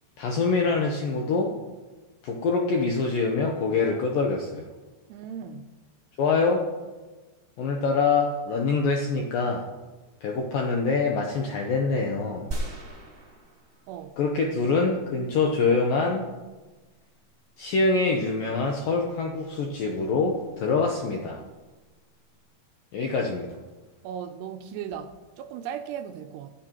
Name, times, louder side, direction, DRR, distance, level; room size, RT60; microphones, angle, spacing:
voice 1, 0.2-1.5 2.2-4.7 6.2-6.7 7.6-9.7 10.2-12.5 14.2-16.3 17.6-21.4 22.9-23.5, left 4 dB, 80° left, 2.0 m, -25 dB
voice 2, 5.1-5.8 13.9-14.2 24.0-26.5, right 8 dB, 80° right, 2.6 m, -37 dB
sound 1, 12.5-14.3 14.8-14.9, right 2 dB, 25° right, 1.1 m, -36 dB
25.5 x 9.0 x 3.0 m
omnidirectional pair, 5.2 m